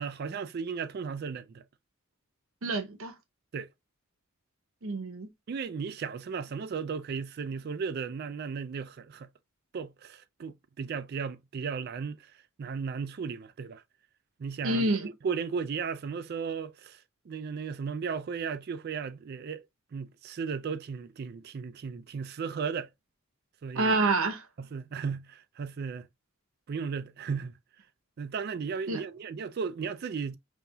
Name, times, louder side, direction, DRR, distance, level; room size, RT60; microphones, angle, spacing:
voice 1, 0.0-1.6 3.5-3.7 5.5-9.3 9.7-12.3 12.6-13.8 14.4-19.6 19.9-22.9 23.6-23.9 24.6-26.1 26.7-27.5 28.2-30.4, right 6 dB, 45° right, 0.3 m, -35 dB
voice 2, 2.6-3.1 4.8-5.3 14.6-15.1 23.7-24.5 28.9-29.0, right 2 dB, 70° right, 0.8 m, -27 dB
5.4 x 2.8 x 2.3 m
head